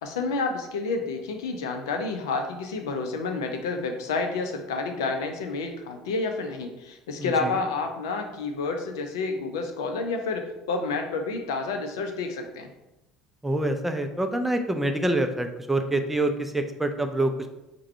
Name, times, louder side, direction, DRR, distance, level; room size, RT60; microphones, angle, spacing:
voice 1, 0.0-12.7, left 3 dB, 70° left, 5 dB, 0.5 m, -29 dB
voice 2, 7.2-7.6 13.4-17.5, right 1 dB, 10° right, 6 dB, 0.4 m, -26 dB
4.8 x 2.2 x 4.4 m, 0.95 s
figure-of-eight pair, 60°, 2 cm